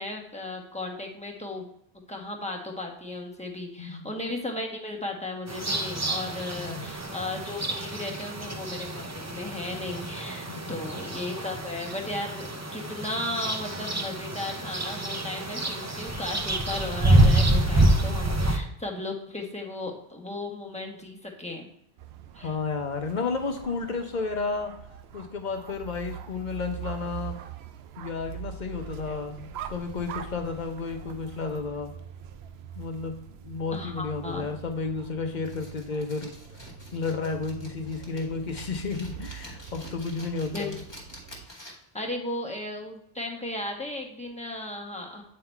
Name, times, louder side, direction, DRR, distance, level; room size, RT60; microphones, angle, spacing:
voice 1, 0.0-1.7 2.1-21.7 22.3-22.5 33.7-34.5 40.5-40.7 41.9-45.2, left 2 dB, 5° left, -1 dB, 1.1 m, -35 dB
voice 2, 3.8-4.1 6.6-6.9 10.5-11.0 22.4-24.8 25.1-27.4 28.0-31.9 32.8-36.3 36.9-40.8, left 4 dB, 50° left, 5 dB, 0.8 m, -32 dB
sound 1, 5.5-18.6, right 1 dB, 20° right, 0.5 m, -27 dB
sound 2, 22.0-41.5, right 8 dB, 80° right, 0.8 m, -43 dB
sound 3, 35.4-42.0, left 1 dB, 25° left, 1.5 m, -48 dB
8.6 x 3.8 x 4.4 m, 0.72 s
omnidirectional pair, 1.0 m